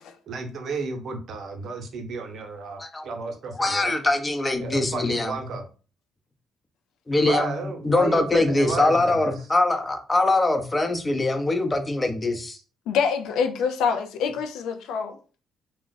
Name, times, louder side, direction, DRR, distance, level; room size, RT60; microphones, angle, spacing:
voice 1, 0.3-3.9 4.6-5.6 7.2-9.3, right 4 dB, 65° right, 0.7 m, -32 dB
voice 2, 3.6-5.3 7.1-12.6, left 2 dB, 25° left, 0.6 m, -23 dB
voice 3, 12.9-15.2, left 6 dB, 80° left, 0.4 m, -25 dB
2.4 x 2.1 x 3.9 m
supercardioid pair, 70°, 0 cm